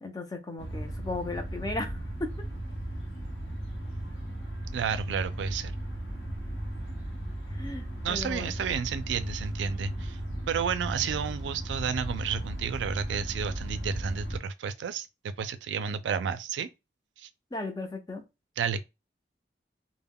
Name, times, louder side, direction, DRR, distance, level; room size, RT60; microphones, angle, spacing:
voice 1, 0.0-2.3 7.5-8.5 17.5-18.2, left 2 dB, 20° left, 0.4 m, -36 dB
sound 1, 0.6-14.4, right 1 dB, 85° left, 0.8 m, -36 dB
voice 2, 4.7-5.7 8.0-10.2 10.5-16.7 17.2-17.3 18.6-18.8, right 7 dB, 85° right, 0.3 m, -31 dB
2.2 x 2.0 x 3.5 m
head